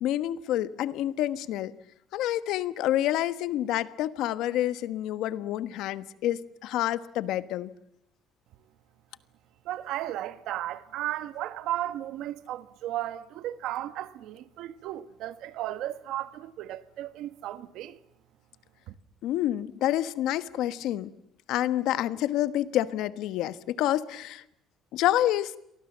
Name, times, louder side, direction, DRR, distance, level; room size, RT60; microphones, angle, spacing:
voice 1, 0.0-1.7 2.1-7.7 19.2-21.1 21.5-24.4 24.9-25.5, left 13 dB, 70° left, 1.3 m, -28 dB
voice 2, 9.6-18.0 18.9-19.0, right 13 dB, 70° right, 1.6 m, -35 dB
29.5 x 23.0 x 7.4 m
cardioid pair, 170°, 0 cm